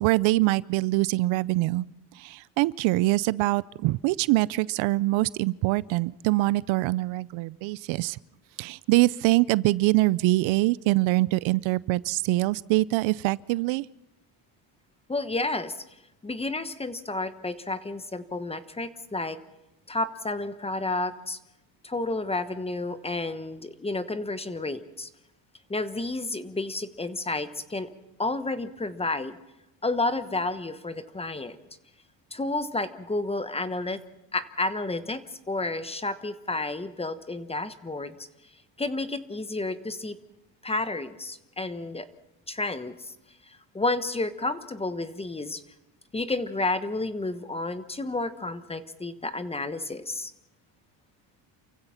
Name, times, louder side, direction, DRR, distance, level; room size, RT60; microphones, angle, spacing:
voice 1, 0.0-1.8 2.2-8.2 8.6-13.8, right 20 dB, 80° right, 21 dB, 0.6 m, -24 dB
voice 2, 15.1-15.8 16.2-19.4 19.9-21.4 21.8-25.1 25.7-27.9 28.2-29.4 29.8-31.6 32.3-34.0 34.3-38.2 38.8-40.2 40.6-42.1 42.5-43.1 43.5-45.6 46.1-50.3, left 2 dB, 15° left, 12 dB, 1.2 m, -31 dB
28.5 x 15.5 x 5.8 m, 0.94 s
cardioid pair, 120°, 46 cm